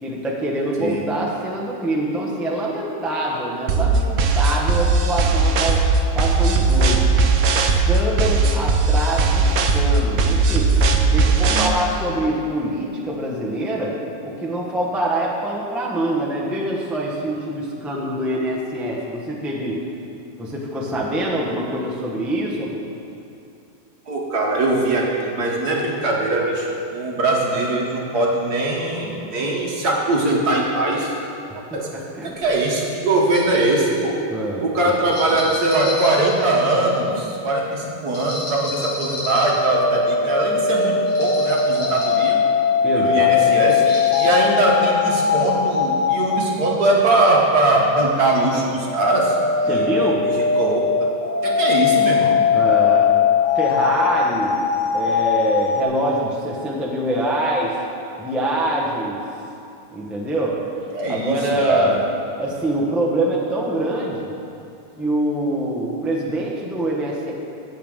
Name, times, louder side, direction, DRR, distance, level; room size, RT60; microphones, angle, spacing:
voice 1, 0.0-5.8 6.1-7.1 7.5-10.7 11.0-14.0 14.2-19.8 20.4-22.9 31.5-32.3 34.3-34.9 42.8-43.8 49.7-50.2 52.5-53.1 53.5-54.7 54.9-57.8 58.2-59.2 59.9-60.6 61.1-62.0 62.4-64.3 65.0-67.3, right 1 dB, ahead, -4 dB, 0.4 m, -25 dB
sound 1, 3.7-11.7, right 3 dB, 80° right, 0.7 m, -18 dB
voice 2, 11.5-11.9 24.1-31.1 31.7-31.9 32.2-34.2 34.6-42.4 43.0-49.4 49.6-50.1 50.6-50.8 51.4-52.4 60.9-61.4 61.7-61.9, right 2 dB, 55° right, -2 dB, 1.5 m, -21 dB
sound 2, 32.3-32.4 33.2-33.5 35.0-36.9 38.1-39.7 41.1-42.2 43.6-44.3, left 2 dB, 65° left, 2.7 m, -32 dB
sound 3, 39.1-46.5 48.5-55.8, left 6 dB, 80° left, 1.8 m, -20 dB
17.0 x 5.8 x 3.7 m, 2.7 s
omnidirectional pair, 2.3 m